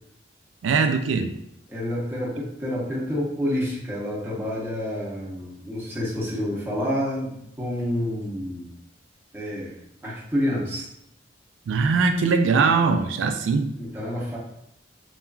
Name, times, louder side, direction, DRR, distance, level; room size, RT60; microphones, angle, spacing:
voice 1, 0.6-1.3 11.7-13.7, right 4 dB, 85° right, 7 dB, 0.3 m, -21 dB
voice 2, 1.7-8.7 9.3-9.7 10.0-10.9 13.8-14.4, left 1 dB, 10° right, -6 dB, 0.7 m, -28 dB
3.0 x 2.3 x 2.3 m, 0.79 s
head